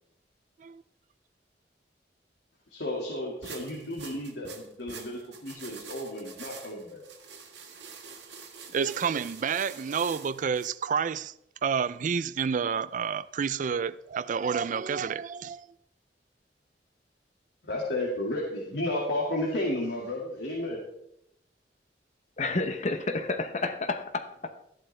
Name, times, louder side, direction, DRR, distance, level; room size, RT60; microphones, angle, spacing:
voice 1, 2.7-7.0 17.6-20.8, left 1 dB, 85° left, 2.1 m, -32 dB
sound 1, 3.4-10.7, right 6 dB, 85° right, 1.7 m, -46 dB
voice 2, 8.7-11.3 11.6-15.7, right 6 dB, 45° right, 0.4 m, -29 dB
voice 3, 22.4-24.5, left 3 dB, 40° left, 0.9 m, -30 dB
13.0 x 11.5 x 3.3 m
head